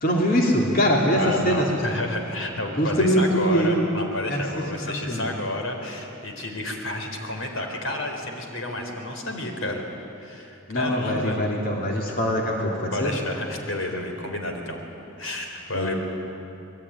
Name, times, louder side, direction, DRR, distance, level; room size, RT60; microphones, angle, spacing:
voice 1, 0.0-1.9 2.8-3.8 4.3-4.4 5.1-5.3 10.7-13.1 15.7-15.9, equal, 45° left, -1 dB, 3.2 m, -23 dB
voice 2, 1.2-9.8 10.2-11.4 12.9-14.8 15.2-16.0, left 1 dB, 80° left, 3 dB, 4.1 m, -30 dB
26.0 x 21.0 x 9.9 m, 2.8 s
head